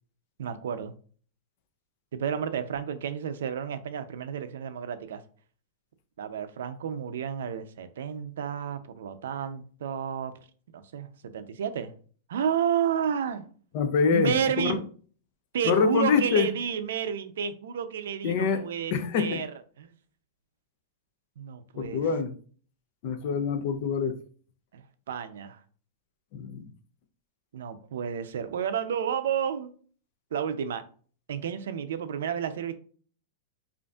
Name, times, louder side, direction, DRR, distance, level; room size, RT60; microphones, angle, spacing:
voice 1, 0.4-0.9 2.1-5.2 6.2-10.3 10.7-11.9 12.3-13.4 14.1-14.8 15.5-19.5 19.8-19.9 21.4-22.1 24.7-25.6 27.5-29.7 30.3-30.8 31.3-32.7, right 8 dB, 80° right, 0.5 m, -31 dB
voice 2, 13.7-14.8 15.6-16.5 18.2-19.4 21.8-22.3 23.0-24.2 26.3-26.6, left 5 dB, 40° left, 0.4 m, -25 dB
5.0 x 2.5 x 2.4 m
supercardioid pair, 175°, 0 cm